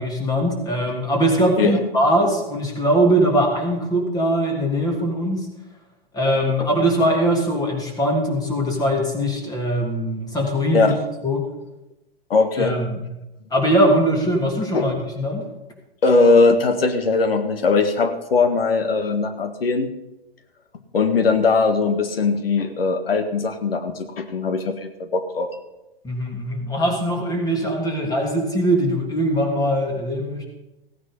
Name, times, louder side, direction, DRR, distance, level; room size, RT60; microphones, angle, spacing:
voice 1, 0.0-5.5 6.1-10.9 11.2-11.5 12.6-12.9 13.5-15.4 26.0-30.4, right 1 dB, 15° left, 1 dB, 3.2 m, -21 dB
voice 2, 12.3-12.8 14.7-14.9 16.0-19.9 20.9-25.5, left 4 dB, 75° left, 8 dB, 1.7 m, -20 dB
16.5 x 9.7 x 5.5 m, 0.96 s
hypercardioid pair, 120°, 30 cm